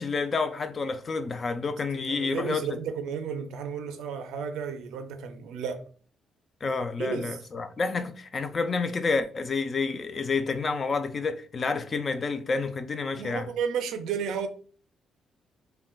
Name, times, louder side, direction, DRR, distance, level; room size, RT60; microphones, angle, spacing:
voice 1, 0.0-2.6 6.6-13.5, left 4 dB, 40° left, 0.3 m, -29 dB
voice 2, 2.1-5.8 7.0-7.4 13.1-14.5, right 6 dB, 85° right, 0.4 m, -33 dB
3.6 x 2.2 x 2.3 m
cardioid pair, 90°, 0 cm